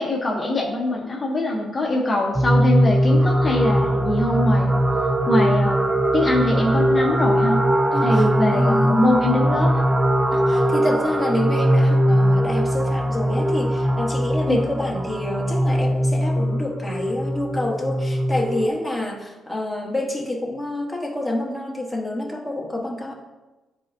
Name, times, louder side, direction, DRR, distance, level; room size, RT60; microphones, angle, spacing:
voice 1, 0.0-4.7 5.3-5.8 6.1-7.6 8.0-9.8 14.5-14.6, left 2 dB, 25° left, -2 dB, 0.8 m, -23 dB
sound 1, 2.3-18.7, right 1 dB, 15° right, 0.4 m, -20 dB
voice 2, 7.9-8.3 8.5-9.2 10.3-23.1, left 1 dB, ahead, -2 dB, 1.2 m, -27 dB
11.5 x 4.3 x 2.6 m, 1.1 s
cardioid pair, 125°, 0 cm